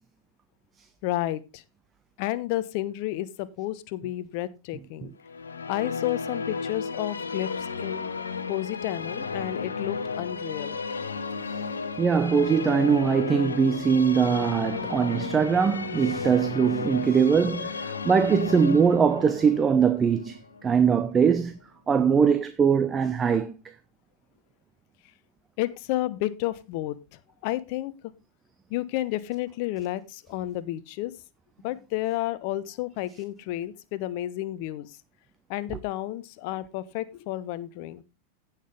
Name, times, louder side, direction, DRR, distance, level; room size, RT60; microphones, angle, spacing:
voice 1, 1.0-1.6 2.2-5.1 5.7-7.5 7.8-8.1 8.5-10.8 25.6-27.0 27.4-27.9 28.7-31.1 31.6-34.9 35.5-38.0, left 15 dB, 45° left, 0.8 m, -31 dB
sound 1, 5.2-21.3, left 5 dB, 70° left, 1.0 m, -33 dB
voice 2, 12.0-21.6 21.9-23.5, right 6 dB, 20° right, 0.7 m, -22 dB
16.0 x 5.8 x 3.5 m
figure-of-eight pair, 90°, 0 cm